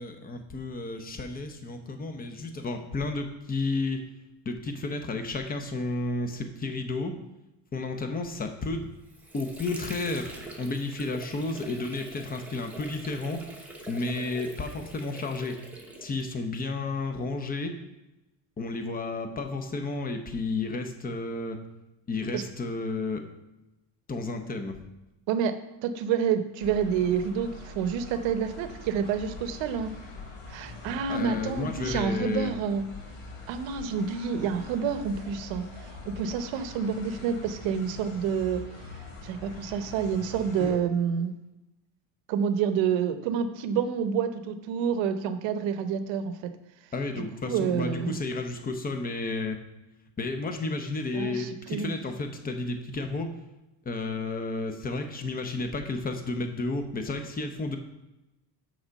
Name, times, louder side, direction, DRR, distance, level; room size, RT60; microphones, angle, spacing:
voice 1, 0.0-4.0 4.5-7.2 7.7-8.9 9.3-13.4 13.9-15.6 16.0-17.7 18.6-21.6 22.1-23.2 24.1-24.8 31.1-32.5 40.6-40.7 46.9-49.6 50.2-53.3 53.8-57.8, left 3 dB, 20° left, 6 dB, 0.7 m, -32 dB
Water / Sink (filling or washing), 8.8-16.5, right 2 dB, 5° right, 0.9 m, -44 dB
voice 2, 25.3-29.9 30.5-32.9 33.5-35.6 36.1-38.6 39.2-41.3 42.3-46.5 47.4-48.2 51.1-51.9, right 7 dB, 70° right, 10 dB, 0.8 m, -28 dB
sound 1, 26.6-40.8, left 3 dB, 70° left, 2.8 m, -43 dB
6.2 x 4.7 x 6.4 m, 0.99 s
cardioid pair, 140°, 46 cm